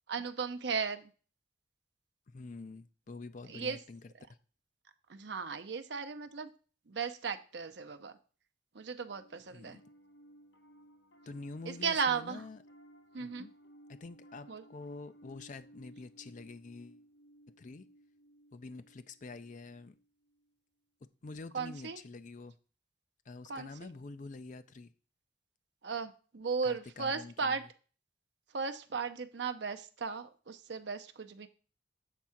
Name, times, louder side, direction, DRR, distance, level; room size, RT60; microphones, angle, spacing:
voice 1, 0.1-1.1 3.5-3.8 5.1-6.5 6.9-8.1 8.7-9.8 11.7-12.4 13.1-13.5 14.5-14.6 21.5-22.0 23.5-23.9 25.8-27.6 28.5-31.5, right 5 dB, 60° right, 0.6 m, -36 dB
voice 2, 2.3-4.1 9.5-9.8 11.3-12.6 13.2-13.5 13.9-17.0 17.6-17.9 18.5-20.0 21.2-22.6 23.3-24.9 26.6-27.6, left 3 dB, 40° left, 0.4 m, -47 dB
Piano, 9.0-20.5, right 1 dB, 75° left, 0.9 m, -59 dB
7.6 x 3.6 x 5.7 m
head